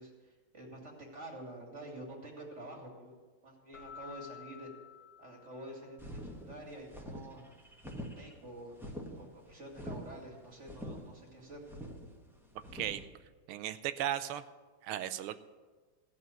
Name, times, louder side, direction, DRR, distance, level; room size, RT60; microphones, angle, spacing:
voice 1, 0.0-3.1 3.4-4.7 5.2-6.2 6.5-7.5 8.0-8.8 9.2-11.6, right 1 dB, 35° right, -1 dB, 2.7 m, -48 dB
Keyboard (musical), 3.7-6.1, left 8 dB, 85° left, 2.6 m, -52 dB
sound 1, 6.0-13.0, equal, ahead, 1.1 m, -45 dB
voice 2, 13.5-14.4 14.8-15.4, right 11 dB, 85° right, 12 dB, 1.6 m, -36 dB
16.0 x 5.4 x 9.2 m, 1.3 s
omnidirectional pair, 2.4 m